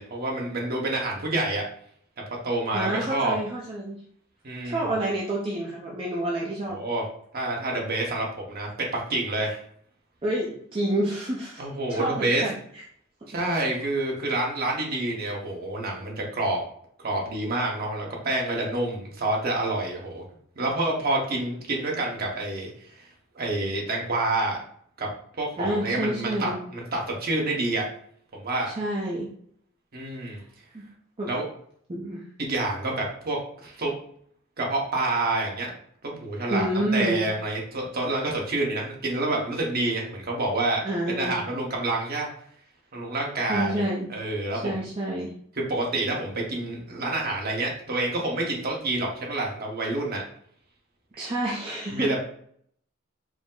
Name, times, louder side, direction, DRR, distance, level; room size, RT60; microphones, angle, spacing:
voice 1, 0.0-1.6 2.2-3.4 4.4-4.8 6.7-7.0 7.3-9.6 11.6-12.4 13.3-16.6 17.0-20.2 20.5-23.1 23.3-24.6 25.0-25.1 25.4-27.9 28.3-28.7 29.9-30.4 31.3-31.5 32.4-33.9 34.6-35.8 36.0-40.8 41.2-42.3 42.9-43.8 44.1-44.8 45.6-50.2 51.1-51.2 51.9-52.2, right 2 dB, 50° right, -1 dB, 1.1 m, -28 dB
voice 2, 2.7-4.0 4.6-6.8 10.2-12.6 25.6-26.6 28.6-29.3 30.3-30.4 30.7-30.8 31.2-31.3 31.9-32.2 36.5-37.2 40.8-41.4 43.5-44.1 44.5-45.3 51.2-52.2, right 1 dB, 25° right, -4 dB, 0.6 m, -28 dB
4.9 x 2.1 x 3.8 m, 0.63 s
head